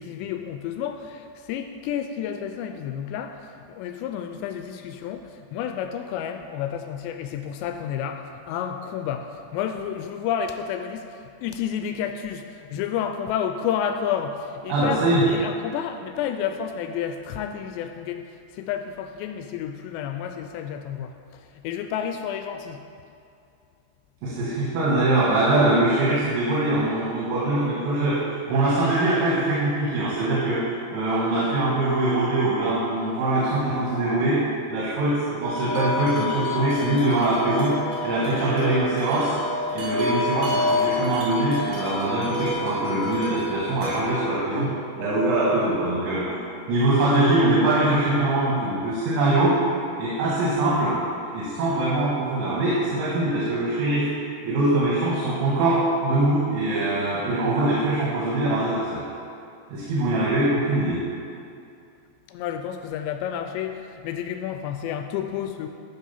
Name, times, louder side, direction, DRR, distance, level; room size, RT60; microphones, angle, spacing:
voice 1, 0.0-3.4 3.7-11.1 11.4-18.2 18.5-21.1 21.6-22.8 62.3-65.7, left 8 dB, 85° left, 7 dB, 2.6 m, -30 dB
voice 2, 14.7-15.3 24.2-30.6 30.9-34.4 34.7-37.8 38.0-39.3 39.7-44.7 45.0-46.4 46.7-49.5 50.0-51.0 51.3-54.1 54.4-59.0 59.7-61.0, right 2 dB, 80° right, -7 dB, 4.0 m, -23 dB
Wind chime, 35.4-44.1, left 2 dB, 55° right, 3.1 m, -29 dB
14.0 x 5.0 x 5.7 m, 2.5 s
omnidirectional pair, 5.3 m